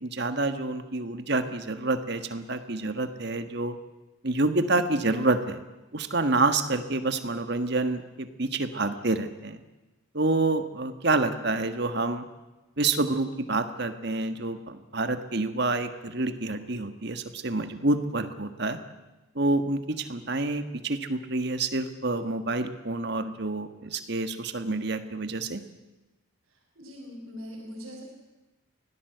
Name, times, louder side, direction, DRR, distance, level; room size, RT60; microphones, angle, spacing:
voice 1, 0.0-3.7 4.2-5.6 5.9-9.6 10.1-12.2 12.8-18.8 19.3-25.6, right 2 dB, 50° right, 9 dB, 1.6 m, -28 dB
voice 2, 26.5-28.0, equal, 70° right, -4 dB, 5.2 m, -42 dB
24.5 x 17.0 x 8.0 m, 1.1 s
head